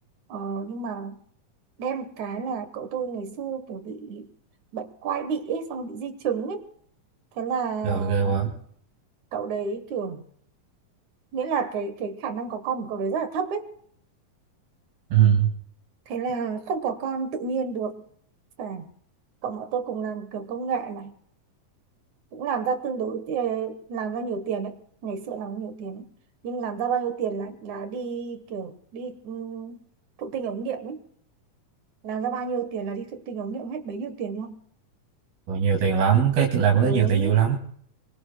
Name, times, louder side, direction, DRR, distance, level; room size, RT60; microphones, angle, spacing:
voice 1, 0.3-1.2 1.8-4.3 4.7-6.7 7.4-8.4 9.3-10.2 11.3-13.7 16.1-18.0 18.6-18.9 19.4-21.1 22.3-26.0 26.4-29.8 30.2-31.0 32.0-34.6 36.8-37.5, right 6 dB, 65° right, 10 dB, 2.3 m, -30 dB
voice 2, 7.8-8.5 15.1-15.5 35.5-37.6, right 8 dB, 85° right, -1 dB, 4.2 m, -20 dB
25.5 x 24.5 x 2.2 m, 0.64 s
omnidirectional pair, 4.2 m